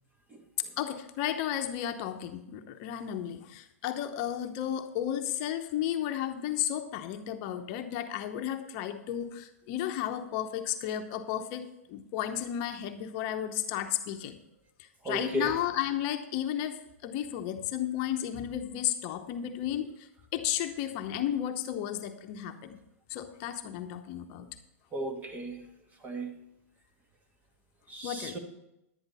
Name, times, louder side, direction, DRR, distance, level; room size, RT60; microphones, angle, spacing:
voice 1, 0.8-14.4 14.8-22.8 23.1-24.5 28.0-28.4, left 11 dB, 45° left, 0.9 m, -33 dB
voice 2, 15.0-15.5 24.9-25.6 26.0-26.3 27.9-28.4, right 1 dB, 20° right, 1.6 m, -35 dB
11.0 x 9.6 x 4.1 m
hypercardioid pair, 115°, 8 cm